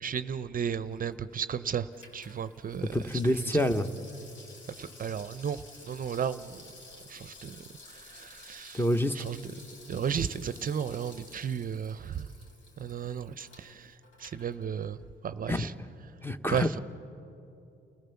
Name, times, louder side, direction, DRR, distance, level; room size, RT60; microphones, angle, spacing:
voice 1, 0.0-1.9 2.1-2.8 4.8-5.6 5.9-6.6 7.1-7.6 8.1-8.8 9.2-9.4 9.9-12.2 12.8-13.8 14.2-15.0 15.2-15.7 16.5-16.8, right 8 dB, 45° right, 13 dB, 0.6 m, -33 dB
Water tap faucet / Sink (filling or washing), 0.8-15.1 15.4-15.5, left 2 dB, 75° left, 4.5 m, -53 dB
voice 2, 2.9-3.9 8.7-9.1 15.5-15.7 16.2-16.8, left 1 dB, 10° left, 9 dB, 1.0 m, -27 dB
29.5 x 16.0 x 7.0 m, 2.8 s
cardioid pair, 90°, 20 cm